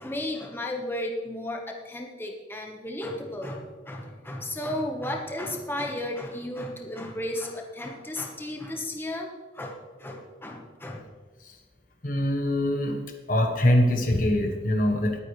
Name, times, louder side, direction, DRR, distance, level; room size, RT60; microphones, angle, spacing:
voice 1, 0.0-11.0, left 1 dB, 15° left, 1 dB, 1.3 m, -34 dB
voice 2, 12.0-13.0 13.3-15.2, left 1 dB, 50° left, 4 dB, 1.3 m, -23 dB
20.0 x 9.3 x 3.3 m, 1.3 s
head